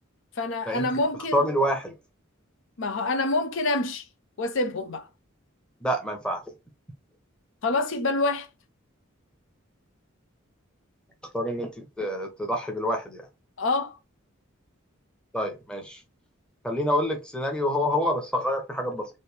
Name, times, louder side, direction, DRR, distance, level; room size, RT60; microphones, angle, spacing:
voice 1, 0.4-1.5 2.8-4.0 4.4-5.1 7.6-8.5 13.6-14.0, left 2 dB, 65° left, 0.5 m, -26 dB
voice 2, 1.3-1.9 5.8-6.4 11.3-13.3 15.3-16.0 16.6-19.1, equal, 5° left, 0.8 m, -27 dB
3.3 x 2.6 x 3.2 m
head